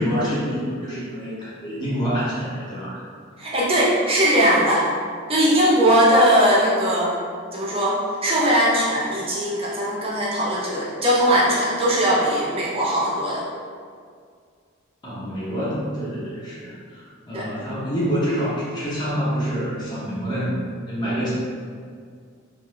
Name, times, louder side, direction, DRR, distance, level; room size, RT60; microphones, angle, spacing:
voice 1, 0.0-3.0 15.0-20.5 20.9-21.3, equal, 20° left, -10 dB, 0.6 m, -27 dB
voice 2, 3.4-4.9 5.3-7.2 7.5-13.4 17.3-17.5, equal, 25° right, -5 dB, 0.4 m, -19 dB
2.7 x 2.3 x 3.0 m, 2.1 s
head